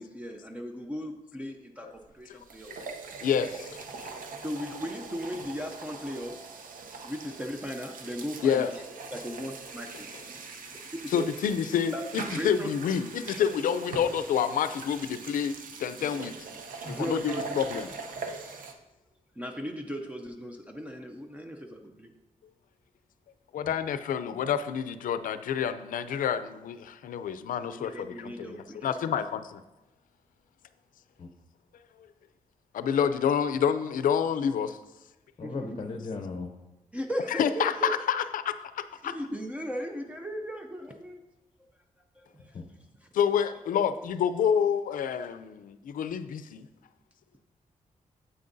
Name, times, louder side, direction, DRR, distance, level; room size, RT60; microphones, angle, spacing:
voice 1, 0.0-2.7 4.4-6.5 7.0-8.8 9.1-10.1 10.9-11.3 11.9-12.0 12.3-12.7 16.8-17.6 19.3-22.1 27.6-29.2 35.4-36.0 36.9-37.9 39.0-41.2 42.1-42.6 43.0-43.1, equal, 10° right, 3 dB, 0.4 m, -37 dB
sound 1, 2.0-2.1 2.4-18.7, right 4 dB, 80° right, 0.8 m, -42 dB
voice 2, 3.2-3.8 8.4-8.7 11.1-16.3 16.8-17.9 23.5-29.6 32.7-34.8 37.3-39.1 43.1-46.7, left 8 dB, 90° left, 12 dB, 0.4 m, -28 dB
voice 3, 35.4-36.5 42.5-42.7, left 3 dB, 40° left, 4 dB, 0.6 m, -36 dB
9.4 x 8.0 x 2.6 m, 1.0 s
wide cardioid pair, 175°, 14 cm